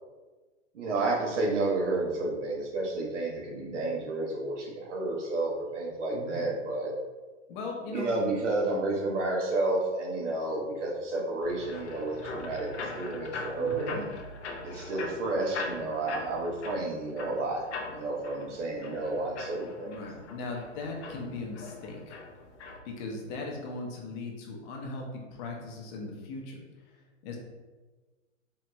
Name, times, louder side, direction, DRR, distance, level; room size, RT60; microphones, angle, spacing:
voice 1, 0.7-6.9 7.9-12.7 12.9-14.0 14.6-17.6 17.9-20.0, right 2 dB, 70° right, -2 dB, 1.5 m, -31 dB
voice 2, 6.1-6.5 7.5-8.1 13.6-14.0 19.9-22.2 22.8-26.6 27.2-27.4, left 3 dB, 35° left, 0 dB, 0.9 m, -38 dB
sound 1, 11.4-22.8, left 3 dB, 60° left, 0.9 m, -41 dB
4.6 x 3.4 x 3.1 m, 1.3 s
hypercardioid pair, 125°, 38 cm